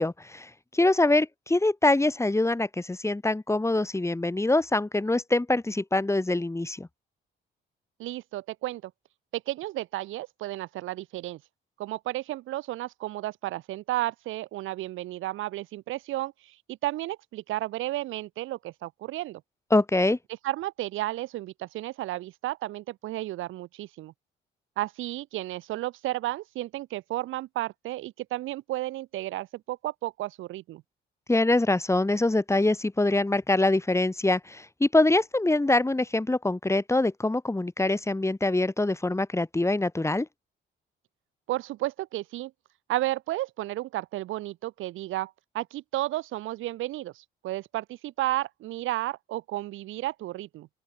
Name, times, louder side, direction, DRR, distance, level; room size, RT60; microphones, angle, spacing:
voice 1, 0.0-6.9 19.7-20.2 31.3-40.3, left 2 dB, 15° left, 5.1 m, -24 dB
voice 2, 8.0-8.9 9.3-11.4 11.8-19.4 20.4-24.1 24.8-30.8 41.5-42.5 42.9-50.7, right 16 dB, 90° right, 2.0 m, -33 dB
open air
cardioid pair, 90°, 20 cm